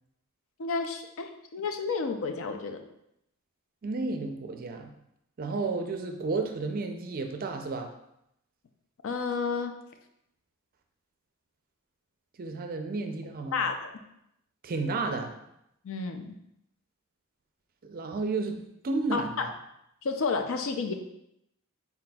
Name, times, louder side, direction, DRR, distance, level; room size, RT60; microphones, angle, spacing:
voice 1, 0.6-2.8 9.0-9.7 13.5-13.9 15.8-16.3 19.1-19.4 20.0-20.9, left 4 dB, 65° left, 6 dB, 0.4 m, -31 dB
voice 2, 3.8-4.9 5.4-7.9 12.4-13.6 14.6-15.3 17.8-18.6 18.8-19.5, right 3 dB, 40° right, 5 dB, 0.4 m, -32 dB
4.1 x 4.0 x 2.3 m, 0.79 s
head